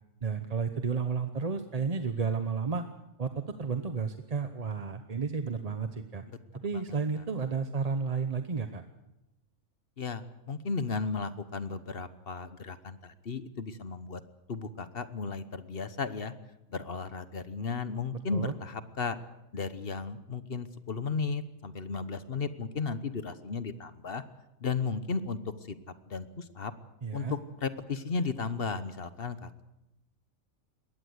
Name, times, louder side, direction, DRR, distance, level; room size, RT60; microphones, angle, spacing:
voice 1, 0.2-2.8 3.2-6.2 6.5-8.8 18.3-18.5 27.0-27.3, right 5 dB, 30° right, 8 dB, 0.8 m, -32 dB
voice 2, 10.0-14.2 14.5-16.3 16.7-19.2 19.5-24.2 24.6-25.7 26.1-26.7 27.1-29.6, left 4 dB, 45° left, 12 dB, 1.2 m, -35 dB
21.5 x 17.5 x 8.0 m, 0.94 s
omnidirectional pair, 1.5 m